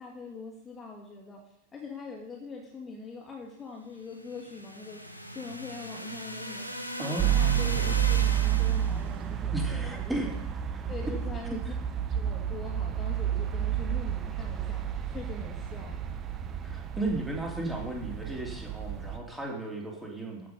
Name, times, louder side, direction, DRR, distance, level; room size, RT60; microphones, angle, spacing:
voice 1, 0.0-1.4 1.7-5.0 5.3-6.7 7.1-10.3 10.9-11.6 12.1-14.8 15.1-16.0, left 4 dB, 20° left, 0 dB, 2.3 m, -43 dB
sound 1, 4.1-9.1, equal, 90° left, 1.2 m, -38 dB
voice 2, 7.0-7.3 9.5-10.3 11.0-11.1 16.6-20.5, right 2 dB, 5° right, -1 dB, 3.0 m, -34 dB
sound 2, 7.2-19.2, right 10 dB, 25° right, 1.0 m, -30 dB
14.5 x 6.2 x 5.4 m, 0.83 s
figure-of-eight pair, 90°, 0 cm